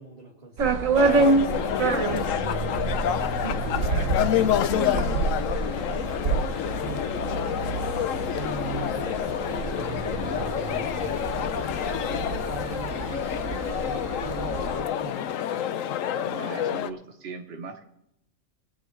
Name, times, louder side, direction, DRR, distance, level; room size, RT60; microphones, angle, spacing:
voice 1, 0.0-2.5 4.9-5.5 5.8-6.1 6.8-15.7, right 2 dB, 30° right, -4 dB, 1.8 m, -42 dB
sound 1, 0.6-14.8, right 3 dB, 70° right, 1.4 m, -28 dB
sound 2, 1.0-16.9, left 10 dB, 70° left, 1.0 m, -28 dB
voice 2, 3.4-5.1 16.2-17.8, right 4 dB, 50° right, 2 dB, 1.1 m, -39 dB
21.0 x 8.7 x 3.2 m, 0.81 s
omnidirectional pair, 1.4 m